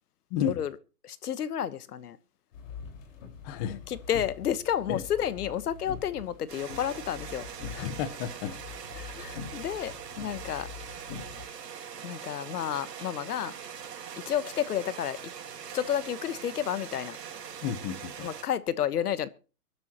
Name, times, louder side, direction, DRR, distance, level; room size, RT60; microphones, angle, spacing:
voice 1, 0.3-0.6 3.4-3.8 4.9-5.0 7.7-8.5 9.1-9.4 17.6-18.3, left 9 dB, 25° left, 1.0 m, -33 dB
voice 2, 1.0-2.2 3.6-7.5 9.0-10.7 12.0-13.5 14.1-15.2 15.7-17.2 18.2-19.3, left 10 dB, 70° left, 1.2 m, -31 dB
sound 1, 2.5-11.5, left 6 dB, 55° left, 4.8 m, -44 dB
sound 2, 6.5-18.4, right 7 dB, 85° right, 2.6 m, -42 dB
23.5 x 12.0 x 3.0 m
hypercardioid pair, 150°, 47 cm